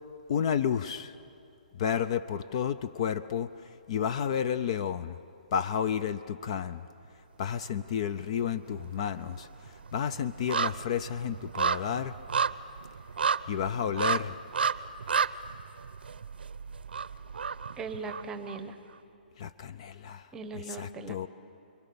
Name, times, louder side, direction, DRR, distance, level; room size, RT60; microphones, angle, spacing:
voice 1, 0.3-1.1 1.7-3.5 3.9-5.2 5.5-6.8 7.4-9.5 9.9-12.1 13.5-14.4 19.4-20.3 20.8-21.3, left 8 dB, 35° left, 14 dB, 0.5 m, -31 dB
sound 1, 7.6-8.3 8.6-18.6 18.9-19.0, right 6 dB, 85° right, 0.7 m, -32 dB
voice 2, 17.8-18.8 20.3-21.3, right 4 dB, 10° right, 9 dB, 0.9 m, -39 dB
30.0 x 22.5 x 6.9 m, 2.8 s
hypercardioid pair, 160°, 5 cm